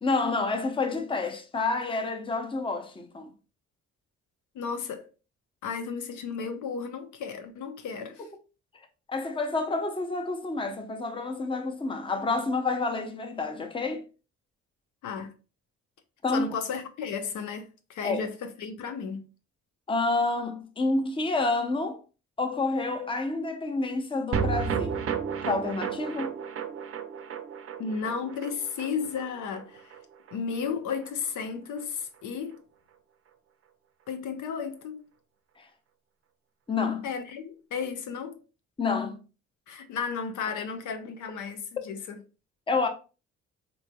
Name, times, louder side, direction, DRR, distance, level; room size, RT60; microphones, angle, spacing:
voice 1, 0.0-3.3 9.1-14.0 16.2-16.5 18.0-18.3 19.9-22.0 22.4-25.1 25.4-26.3 35.6-35.7 36.7-37.1 38.8-39.2 42.7-42.9, left 3 dB, 15° left, 0.6 m, -29 dB
voice 2, 4.5-5.1 5.6-8.3 15.0-15.3 16.3-19.3 27.8-30.0 30.3-32.6 34.1-35.1 37.0-38.4 39.7-42.2, left 6 dB, 80° left, 0.7 m, -34 dB
sound 1, 24.3-30.8 31.0-31.1 31.4-31.5, right 6 dB, 50° right, 0.6 m, -33 dB
3.9 x 3.0 x 2.2 m
cardioid pair, 90°, 30 cm